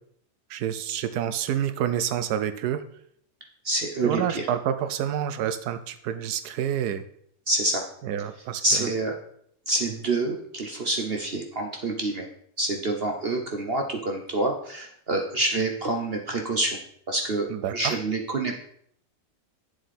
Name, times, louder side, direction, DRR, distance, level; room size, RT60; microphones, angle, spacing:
voice 1, 0.5-2.8 4.0-7.0 8.0-8.9 17.5-17.9, right 9 dB, 85° right, 11 dB, 1.2 m, -28 dB
voice 2, 3.6-4.5 7.5-7.8 8.6-9.1 9.7-12.3 12.6-16.8 17.1-18.6, right 2 dB, 45° right, 3 dB, 1.0 m, -27 dB
8.1 x 7.6 x 4.2 m, 0.66 s
omnidirectional pair, 1.6 m